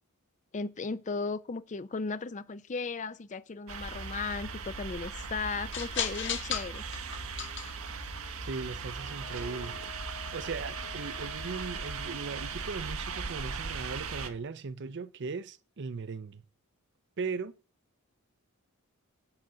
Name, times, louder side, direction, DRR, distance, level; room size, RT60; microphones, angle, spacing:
voice 1, 0.5-6.8, left 4 dB, 35° left, 0.5 m, -36 dB
sound 1, 3.7-11.1, left 6 dB, 55° left, 1.3 m, -40 dB
sound 2, 3.7-14.3, right 5 dB, 70° right, 1.0 m, -39 dB
voice 2, 8.5-9.8 10.3-16.4 17.2-17.5, right 4 dB, 55° right, 0.5 m, -38 dB
Wind instrument woodwind instrument, 9.2-12.8, left 12 dB, 90° left, 1.6 m, -50 dB
9.7 x 7.7 x 3.8 m
head